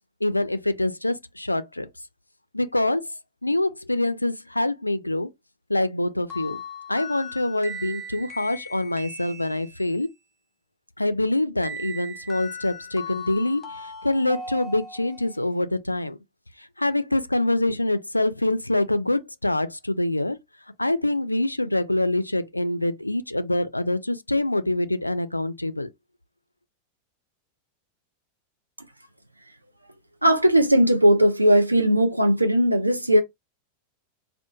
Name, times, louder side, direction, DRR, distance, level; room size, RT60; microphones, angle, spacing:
voice 1, 0.2-1.9 2.5-3.0 3.4-5.3 5.7-6.6 6.9-10.1 11.0-16.2 16.6-20.4 20.8-25.9, left 1 dB, 85° left, 0.3 m, -25 dB
sound 1, 6.3-10.0 11.6-15.4, left 2 dB, 20° left, 1.0 m, -38 dB
voice 2, 30.2-33.2, equal, 85° right, 0.5 m, -18 dB
2.9 x 2.1 x 2.3 m
figure-of-eight pair, 90°, 0 cm